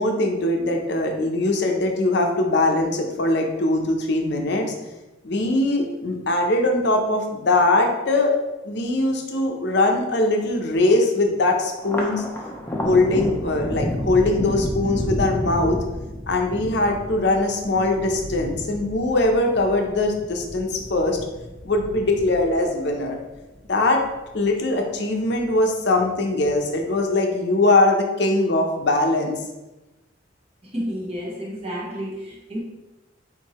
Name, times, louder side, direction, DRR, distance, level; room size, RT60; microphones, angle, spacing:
voice 1, 0.0-4.7 5.2-8.4 8.6-12.2 12.8-15.8 16.3-21.2 21.6-23.2 23.7-24.0 24.3-29.4, left 2 dB, 60° left, 2 dB, 0.6 m, -21 dB
Thunder, 11.8-24.4 24.8-25.6 26.0-26.8, equal, 10° left, 0.6 m, -31 dB
voice 2, 30.6-32.6, equal, 30° right, -3 dB, 0.9 m, -31 dB
4.6 x 3.8 x 3.0 m, 1.0 s
head